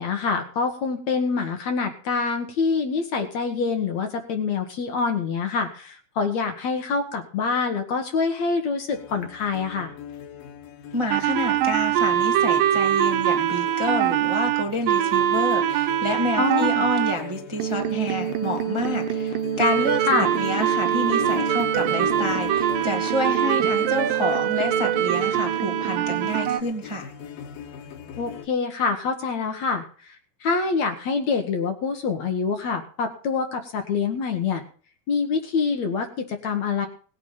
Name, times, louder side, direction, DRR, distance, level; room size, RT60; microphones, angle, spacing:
voice 1, 0.0-9.9 16.4-16.8 20.1-20.3 28.2-34.6 35.1-36.9, left 5 dB, 60° left, 6 dB, 2.4 m, -26 dB
sound 1, 8.9-28.5, left 9 dB, 85° left, 3.4 m, -38 dB
voice 2, 10.9-27.1, left 1 dB, 10° right, 2 dB, 1.5 m, -28 dB
sound 2, 11.1-17.2 17.6-26.6, right 11 dB, 80° right, 2.6 m, -23 dB
19.0 x 8.8 x 5.7 m, 0.42 s
omnidirectional pair, 4.0 m